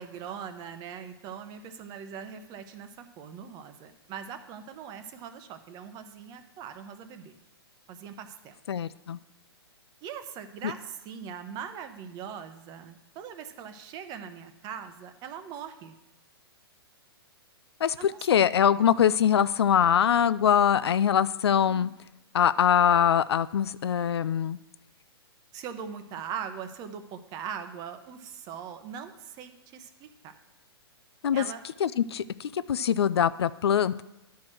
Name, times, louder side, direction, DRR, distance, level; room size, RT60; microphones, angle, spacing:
voice 1, 0.0-7.4 7.9-8.6 10.0-15.9 18.0-18.3 18.8-18.9 21.7-21.9 25.5-30.4 31.3-31.6, right 7 dB, 30° right, 9 dB, 0.8 m, -41 dB
voice 2, 8.7-9.2 10.6-10.7 17.8-21.9 22.3-24.6 31.2-31.4 31.8-34.0, left 8 dB, 80° left, 16 dB, 0.4 m, -23 dB
10.5 x 4.6 x 6.2 m, 0.95 s
hypercardioid pair, 125°, 13 cm